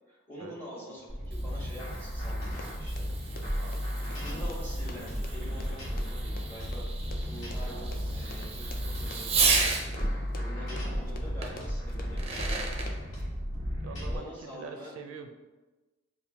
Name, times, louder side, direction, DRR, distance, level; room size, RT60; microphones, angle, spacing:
voice 1, 0.1-3.1 4.0-6.8 7.3-13.0 14.0-14.9, equal, 10° left, -7 dB, 1.3 m, -46 dB
Fireworks, 1.0-9.9 11.4-11.5 12.0-12.9, right 4 dB, 30° right, 0.5 m, -34 dB
sound 1, 1.1-14.2, equal, 70° left, 1.4 m, -34 dB
Run, 2.5-13.2, left 3 dB, 45° left, 0.4 m, -48 dB
voice 2, 3.4-3.9 13.8-15.3, right 5 dB, 80° right, 6 dB, 0.4 m, -44 dB
6.6 x 2.5 x 2.8 m, 1.2 s
head